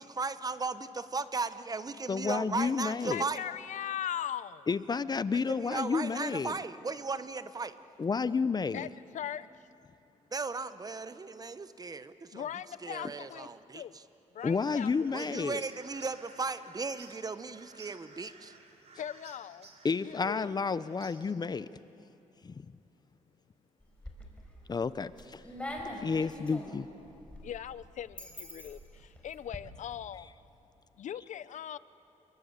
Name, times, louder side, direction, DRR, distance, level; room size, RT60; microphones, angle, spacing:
voice 1, 0.0-3.4 5.3-7.7 10.3-12.5 12.8-14.0 15.1-18.5, right 4 dB, 30° right, 13 dB, 1.0 m, -36 dB
voice 2, 2.1-3.2 4.7-6.6 8.0-8.9 14.4-15.6 19.8-21.7 22.4-22.7 24.7-25.4 26.0-26.9, left 5 dB, 30° left, 16 dB, 0.6 m, -31 dB
voice 3, 3.1-4.7 8.7-8.9 9.1-9.5 12.3-13.5 13.7-13.9 14.3-14.9 19.0-19.7 20.0-20.5 27.4-30.3 31.0-31.8, left 10 dB, 70° left, 17 dB, 0.6 m, -39 dB
sound 1, 14.4-21.3, right 4 dB, 55° right, 3.3 m, -55 dB
sound 2, 23.8-24.5 24.9-29.6, left 1 dB, 10° left, 4.6 m, -43 dB
28.0 x 23.0 x 8.1 m, 2.8 s
cardioid pair, 105°, 13 cm